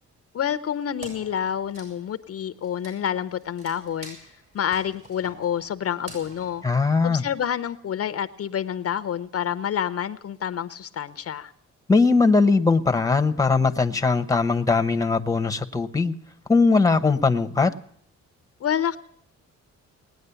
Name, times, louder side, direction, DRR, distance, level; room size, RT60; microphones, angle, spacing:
voice 1, 0.3-4.2 4.5-6.6 7.0-11.5 18.6-19.0, left 9 dB, 50° left, 13 dB, 0.8 m, -28 dB
Wood, 1.0-7.7, right 2 dB, 50° right, 7.7 m, -47 dB
voice 2, 6.6-7.2 11.9-16.1 16.5-17.7, left 4 dB, 10° left, 10 dB, 1.0 m, -20 dB
19.5 x 9.5 x 6.9 m, 0.68 s
cardioid pair, 90°, 30 cm